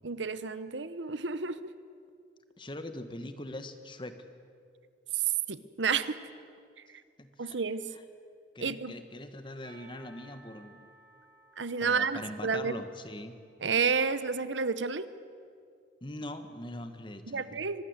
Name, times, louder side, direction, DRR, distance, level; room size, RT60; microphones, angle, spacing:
voice 1, 0.0-1.7 5.1-5.2 5.5-6.2 7.4-7.8 8.6-8.9 11.6-12.7 13.6-15.1 17.3-17.8, right 5 dB, 85° right, 14 dB, 1.0 m, -30 dB
voice 2, 2.6-4.2 7.2-7.6 8.5-10.9 11.8-13.4 16.0-17.6, left 1 dB, 25° left, 9 dB, 1.4 m, -42 dB
Percussion, 9.6-14.5, right 2 dB, 35° right, 4.2 m, -60 dB
24.5 x 20.0 x 8.1 m, 2.3 s
head